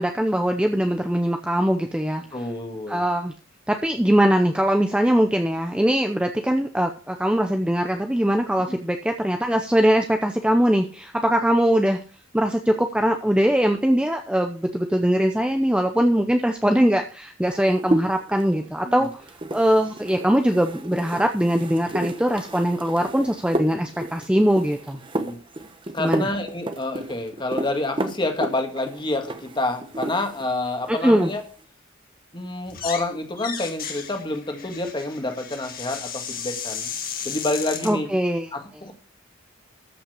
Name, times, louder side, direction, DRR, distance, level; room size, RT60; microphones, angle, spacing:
voice 1, 0.0-2.2 2.9-3.3 3.7-12.0 12.3-19.1 19.5-25.0 26.0-26.3 30.9-31.3 37.8-38.5, equal, 5° right, 5 dB, 0.7 m, -21 dB
voice 2, 2.3-3.0 8.7-8.8 18.8-19.1 25.2-25.4 25.9-31.4 32.3-36.9 37.2-38.1 38.5-38.9, left 2 dB, 25° left, 4 dB, 2.0 m, -28 dB
sound 1, 17.4-30.5 30.8-31.5, right 1 dB, 25° right, 1.0 m, -32 dB
sound 2, 32.7-33.1 33.4-37.9, left 7 dB, 45° left, 2.0 m, -34 dB
13.5 x 5.8 x 6.6 m, 0.39 s
head